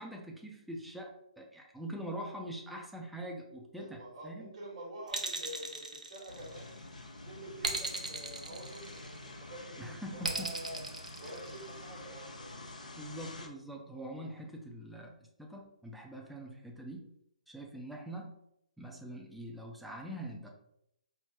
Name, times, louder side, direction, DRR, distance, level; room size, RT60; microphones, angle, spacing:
voice 1, 0.0-4.5 9.8-10.5 13.0-15.1 15.4-17.1 17.5-18.3 18.8-20.5, right 1 dB, ahead, 0 dB, 0.5 m, -43 dB
voice 2, 3.7-6.7 7.1-10.8 11.2-12.7, right 1 dB, 50° right, -6 dB, 1.2 m, -47 dB
sound 1, 5.1-6.8 7.6-9.3 10.2-11.8, right 3 dB, 80° right, 0.7 m, -37 dB
sound 2, 6.3-13.5, left 2 dB, 80° left, 0.7 m, -48 dB
4.5 x 2.0 x 3.7 m, 0.77 s
figure-of-eight pair, 130°, 4 cm